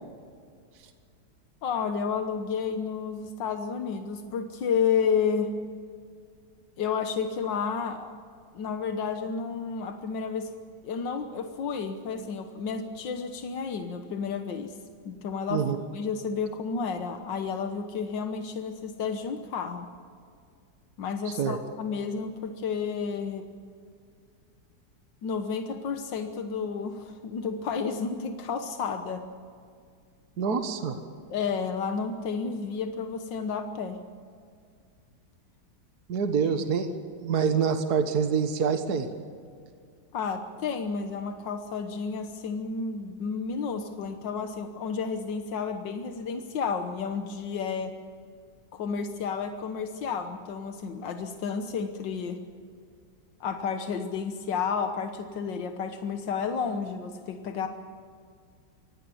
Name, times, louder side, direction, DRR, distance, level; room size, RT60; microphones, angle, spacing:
voice 1, 1.6-5.5 6.8-8.2 8.5-10.5 10.8-14.7 15.1-15.6 15.9-19.9 21.0-23.5 25.2-29.2 31.3-34.0 36.5-36.6 40.1-47.9 48.7-52.4 53.4-57.7, left 6 dB, 85° left, 6 dB, 1.9 m, -31 dB
voice 2, 21.3-21.6 30.4-31.0 36.1-36.9 37.2-39.1, right 6 dB, 60° right, 7 dB, 1.9 m, -26 dB
24.5 x 17.5 x 7.1 m, 2.2 s
omnidirectional pair, 1.9 m